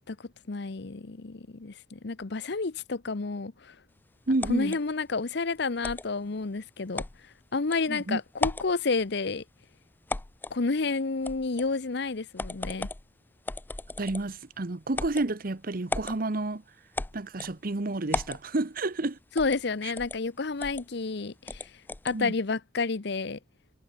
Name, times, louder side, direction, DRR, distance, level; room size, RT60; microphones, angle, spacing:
voice 1, 0.5-3.8 4.5-7.0 7.5-9.4 10.5-12.9 19.4-21.7 22.0-23.4, left 4 dB, 60° left, 0.8 m, -30 dB
voice 2, 4.3-4.8 7.9-8.2 14.0-16.6 17.1-19.2 22.1-22.3, right 2 dB, 50° right, 1.0 m, -30 dB
sound 1, 4.4-4.8 5.8-6.1 7.0-7.2 7.7-7.8 8.3-8.7 10.1-10.6 11.2-11.7 12.4-13.0 13.5-14.3 14.9-15.3 15.9-16.2 17.0-17.5 18.1-18.4 19.4-19.6 20.0-20.2 20.6-20.8 21.5-22.2, left 2 dB, 10° left, 0.3 m, -34 dB
head